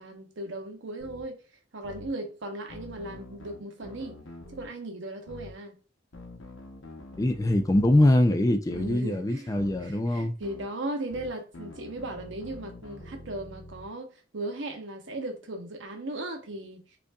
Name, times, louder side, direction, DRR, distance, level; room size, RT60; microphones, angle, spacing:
voice 1, 0.0-1.4 1.7-4.2 4.5-5.8 8.7-9.5 9.8-14.1 14.3-16.8, right 1 dB, 70° right, 0.8 m, -37 dB
sound 1, 1.0-1.2 1.8-2.1 2.7-4.7 5.3-5.5 6.1-8.1 8.7-9.0 9.6-9.8 10.4-10.7 11.1-13.9, left 2 dB, 85° left, 0.9 m, -45 dB
voice 2, 7.2-10.4, left 1 dB, 15° left, 0.3 m, -23 dB
5.1 x 2.5 x 2.3 m
head